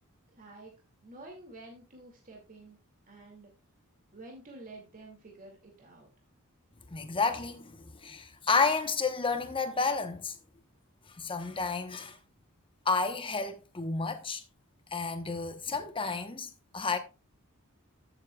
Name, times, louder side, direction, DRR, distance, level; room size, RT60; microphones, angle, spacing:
voice 1, 0.4-0.7 1.0-2.8 3.1-3.5 4.1-6.1, right 2 dB, 40° right, 2.2 m, -49 dB
voice 2, 6.9-10.4 11.2-12.2 12.8-14.4 14.9-17.0, left 4 dB, 25° left, 1.0 m, -31 dB
14.5 x 7.3 x 2.3 m
head